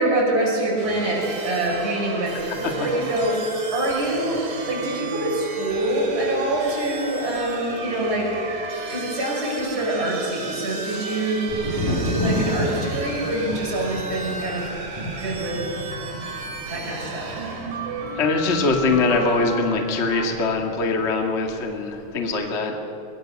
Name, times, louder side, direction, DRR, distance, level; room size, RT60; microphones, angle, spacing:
voice 1, 0.0-8.3 8.9-14.7 15.2-15.6 16.7-17.4, right 1 dB, 20° right, -4 dB, 6.0 m, -25 dB
sound 1, 0.8-20.3, right 2 dB, 90° right, 4.2 m, -34 dB
Thunder, 11.5-21.1 21.4-22.1, equal, 50° left, 7.3 m, -31 dB
voice 2, 18.2-22.7, left 3 dB, 25° left, 2 dB, 1.8 m, -22 dB
23.5 x 23.0 x 6.5 m, 2.8 s
omnidirectional pair, 3.7 m